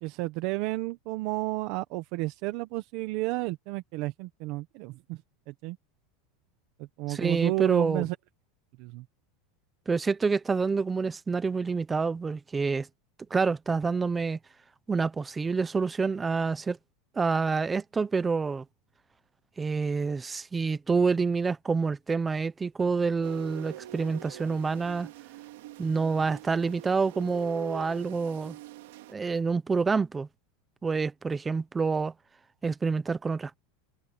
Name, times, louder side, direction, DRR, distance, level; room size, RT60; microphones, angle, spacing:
voice 1, 0.0-5.2 5.5-5.8 6.8-8.2 8.8-9.0, right 20 dB, 45° right, 0.9 m, -32 dB
voice 2, 7.1-8.0 9.9-12.9 13.3-14.4 14.9-16.8 17.2-18.6 19.6-25.1 25.8-28.6 29.1-30.3 30.8-32.1 32.6-33.6, right 4 dB, 10° right, 0.7 m, -27 dB
sound 1, 23.2-29.1, right 14 dB, 70° right, 3.0 m, -44 dB
supercardioid pair, 170°, 0 cm